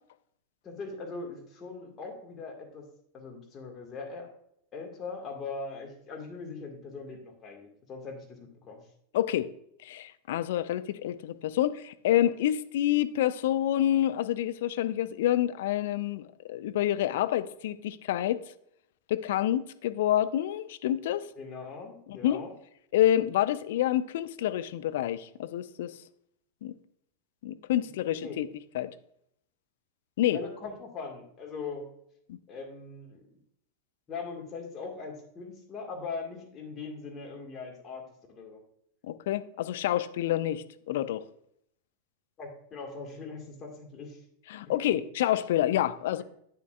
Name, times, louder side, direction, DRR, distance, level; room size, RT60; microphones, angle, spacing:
voice 1, 0.6-2.9 3.1-4.3 4.7-8.9 21.4-22.5 27.8-28.4 30.3-31.9 32.5-33.2 34.1-38.6 42.4-44.2 44.7-44.8, left 4 dB, 25° left, 1.8 m, -41 dB
voice 2, 9.1-9.5 9.8-18.4 19.1-21.3 22.1-22.4 22.9-26.0 26.6-26.7 27.4-28.5 28.7-28.9 30.2-30.4 32.3-32.4 39.0-41.2 44.5-46.2, left 12 dB, 55° left, 0.4 m, -28 dB
8.4 x 7.3 x 2.4 m
figure-of-eight pair, 90°, 0 cm